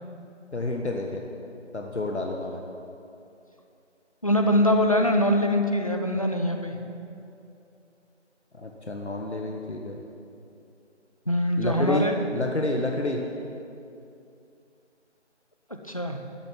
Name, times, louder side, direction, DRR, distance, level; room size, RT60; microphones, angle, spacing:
voice 1, 0.5-1.2 1.7-2.6 8.5-10.0 11.6-12.0 12.3-13.2, left 2 dB, 65° left, 1 dB, 1.5 m, -29 dB
voice 2, 4.2-6.8 11.3-12.2 15.9-16.2, equal, 30° left, 4 dB, 0.8 m, -23 dB
13.0 x 7.6 x 9.2 m, 2.6 s
figure-of-eight pair, 165°, 36 cm